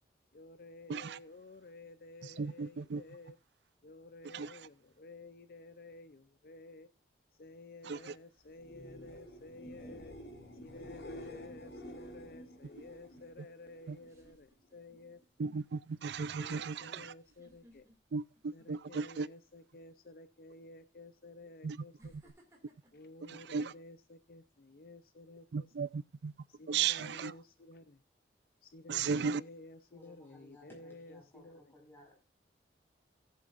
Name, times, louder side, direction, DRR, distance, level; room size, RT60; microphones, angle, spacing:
voice 1, 0.3-3.4 3.8-6.9 7.4-10.1 10.6-15.2 16.3-17.9 18.5-22.3 22.9-25.7 26.5-28.0 28.6-31.7, left 2 dB, 55° left, 0.5 m, -53 dB
voice 2, 2.2-3.0 4.3-4.6 7.8-8.1 13.9-14.0 15.4-17.1 18.1-19.3 21.6-21.8 23.3-23.7 25.5-26.3 26.7-27.3 28.9-29.4, right 6 dB, 70° right, 0.4 m, -35 dB
sound 1, 8.5-14.3 14.6-15.2 22.3-22.4, left 1 dB, 85° left, 4.1 m, -50 dB
sound 2, 14.0-15.2 15.6-15.9 17.2-19.0 19.4-19.7 20.7-20.8 22.0-24.2 24.7-25.0, equal, 15° right, 2.2 m, -65 dB
voice 3, 29.9-32.2, left 1 dB, 10° left, 4.8 m, -58 dB
17.5 x 7.7 x 2.5 m
head